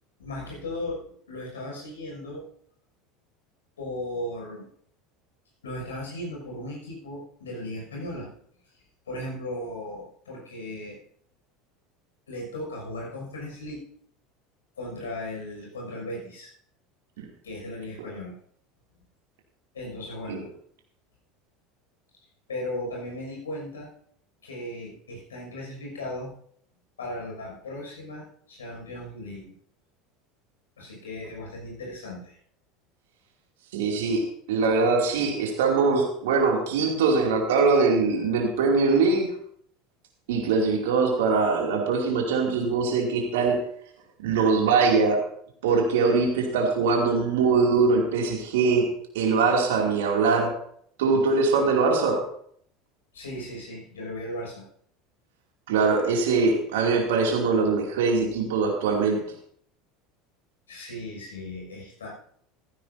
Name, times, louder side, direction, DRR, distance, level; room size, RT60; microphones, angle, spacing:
voice 1, 0.2-2.5 3.8-4.7 5.6-8.3 8.7-11.0 12.3-13.9 14.8-16.5 17.4-18.4 19.7-20.5 22.5-23.9 24.4-26.3 27.0-29.5 30.8-32.4 53.1-54.6 60.7-62.1, left 1 dB, 80° left, -2 dB, 6.4 m, -36 dB
voice 2, 33.7-34.2 34.5-39.3 40.3-43.6 44.2-45.2 45.6-48.9 49.1-50.5 51.0-52.2 55.7-59.2, right 4 dB, 70° right, 0 dB, 2.7 m, -22 dB
15.0 x 14.5 x 2.8 m, 0.64 s
figure-of-eight pair, 75°, 0 cm